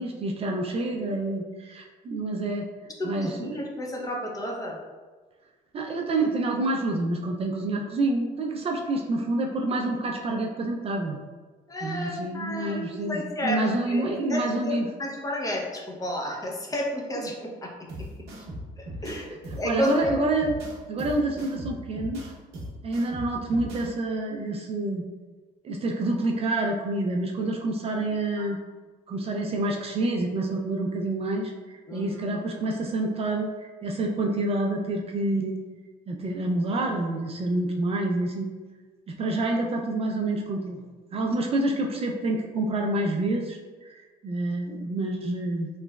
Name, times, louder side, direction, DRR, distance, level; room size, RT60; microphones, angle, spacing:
voice 1, 0.0-2.7 3.0-3.6 5.7-11.2 11.8-14.9 19.3-20.6 20.9-22.3 22.8-25.1 25.6-28.6 29.1-35.6 36.1-38.5 39.1-40.8 41.1-45.7, right 2 dB, 35° right, 1 dB, 0.4 m, -28 dB
voice 2, 3.0-4.8 11.7-13.6 13.8-17.7 18.0-18.1 18.8-20.1 28.4-28.5 31.9-32.4, left 1 dB, 20° left, -1 dB, 0.6 m, -32 dB
sound 1, 17.9-23.9, equal, 75° right, 0.8 m, -39 dB
3.2 x 2.9 x 2.2 m, 1.4 s
cardioid pair, 110°, 17 cm